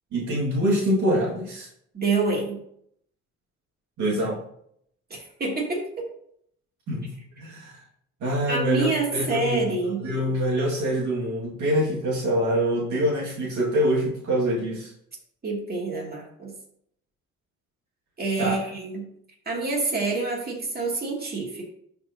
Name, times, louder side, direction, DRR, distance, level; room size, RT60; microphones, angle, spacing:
voice 1, 0.1-1.7 4.0-4.4 6.9-7.7 8.2-9.7 10.0-14.9 18.4-18.7, equal, 70° right, -3 dB, 2.0 m, -25 dB
voice 2, 1.9-2.6 5.1-6.1 8.5-10.0 15.4-16.5 18.2-19.1 19.5-21.6, right 3 dB, 30° right, -2 dB, 2.4 m, -27 dB
12.0 x 4.4 x 2.7 m, 0.70 s
cardioid pair, 90°, 30 cm